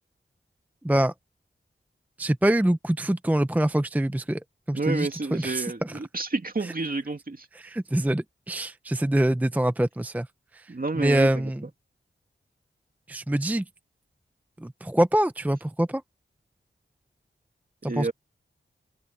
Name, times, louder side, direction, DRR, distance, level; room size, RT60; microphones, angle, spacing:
voice 1, 2.2-4.4 4.7-5.7 7.6-10.3 10.5-11.6 13.1-13.6 14.6-16.0 17.8-18.1, right 1 dB, 5° right, 0.6 m, -25 dB
voice 2, 4.7-7.5 10.7-11.5 17.9-18.1, right 3 dB, 45° right, 2.5 m, -30 dB
open air
cardioid pair, 45°, 21 cm